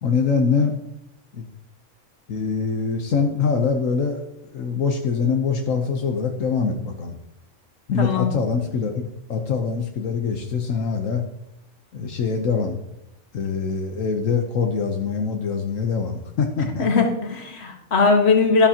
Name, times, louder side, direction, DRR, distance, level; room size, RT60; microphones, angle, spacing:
voice 1, 0.0-0.7 1.3-1.5 2.3-4.2 4.5-7.2 7.9-11.2 11.9-12.8 13.3-16.9, left 5 dB, 80° left, 3 dB, 1.3 m, -24 dB
voice 2, 8.0-8.3 16.8-18.7, left 4 dB, 55° left, 3 dB, 1.8 m, -19 dB
12.5 x 12.0 x 2.9 m, 0.84 s
omnidirectional pair, 1.3 m